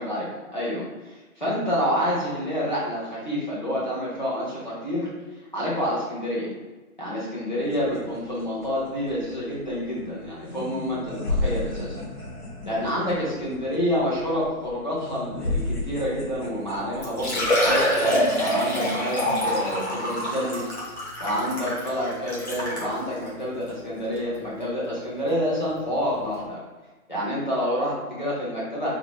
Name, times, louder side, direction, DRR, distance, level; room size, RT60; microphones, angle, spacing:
voice 1, 0.0-5.1 5.5-6.5 7.0-11.9 12.7-17.9 18.4-20.6 21.2-26.6 27.1-28.9, equal, 30° left, -7 dB, 0.9 m, -28 dB
sound 1, 7.6-17.8, left 2 dB, 85° left, 1.2 m, -34 dB
Liquid, 16.6-16.7 17.0-22.9 23.6-23.7 24.2-24.3 25.9-26.0 26.2-26.3, equal, 50° left, 1.3 m, -25 dB
3.7 x 2.1 x 3.5 m, 1.2 s
figure-of-eight pair, 170°, 44 cm